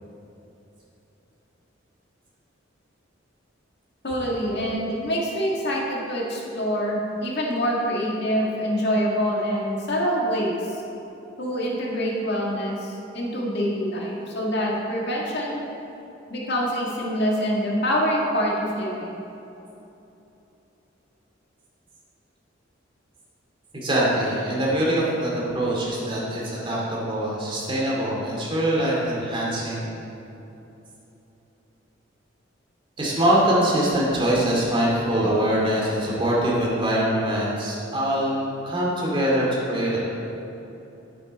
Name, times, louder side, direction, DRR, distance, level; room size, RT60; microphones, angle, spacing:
voice 1, 4.0-10.8 11.4-15.6 16.3-19.1, equal, 60° left, -3 dB, 1.8 m, -25 dB
voice 2, 23.7-29.9 33.0-40.0, right 1 dB, 25° right, -5 dB, 2.4 m, -23 dB
10.5 x 9.1 x 4.2 m, 2.9 s
head